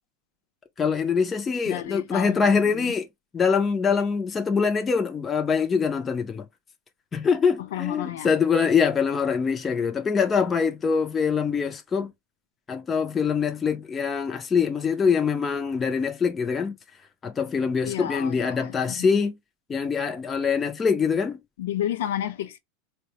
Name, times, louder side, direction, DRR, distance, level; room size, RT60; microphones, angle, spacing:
voice 1, 0.8-3.1 3.3-6.5 7.1-12.1 12.7-16.8 17.2-19.4 19.7-21.4, left 6 dB, 15° left, 0.4 m, -24 dB
voice 2, 1.6-3.0 7.7-8.3 17.9-19.1 21.6-22.6, left 11 dB, 85° left, 0.6 m, -31 dB
4.0 x 2.0 x 2.8 m
supercardioid pair, 180°, 0 cm